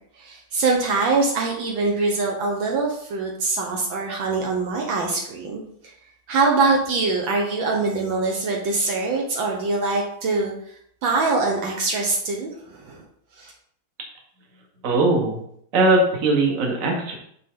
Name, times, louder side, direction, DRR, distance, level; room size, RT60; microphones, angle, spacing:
voice 1, 0.2-5.6 6.3-10.5 11.0-13.0 13.4-13.5, right 3 dB, 70° right, -1 dB, 1.7 m, -23 dB
voice 2, 14.8-15.4 15.7-17.1, right 2 dB, 40° right, 0 dB, 1.6 m, -20 dB
9.1 x 3.8 x 3.7 m, 0.67 s
omnidirectional pair, 2.3 m